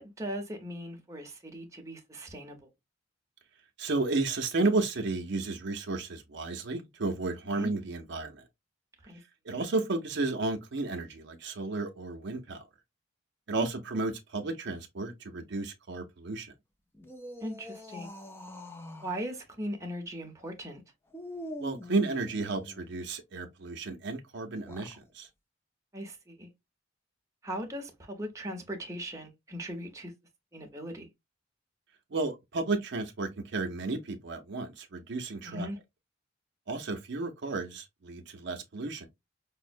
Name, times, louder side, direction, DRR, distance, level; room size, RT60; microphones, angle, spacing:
voice 1, 0.0-2.6 7.5-7.7 9.1-9.2 13.6-13.7 17.4-18.1 19.0-20.8 25.9-26.5 27.4-30.1 30.5-31.1 35.4-35.8, equal, 15° right, 0.8 m, -38 dB
voice 2, 3.8-8.4 9.4-12.6 13.5-16.5 21.6-25.3 32.1-35.7 36.7-39.1, right 3 dB, 60° right, 0.6 m, -33 dB
sound 1, 16.9-19.2 21.1-22.9 24.5-25.0, left 1 dB, 10° left, 0.5 m, -44 dB
5.3 x 2.0 x 2.5 m
head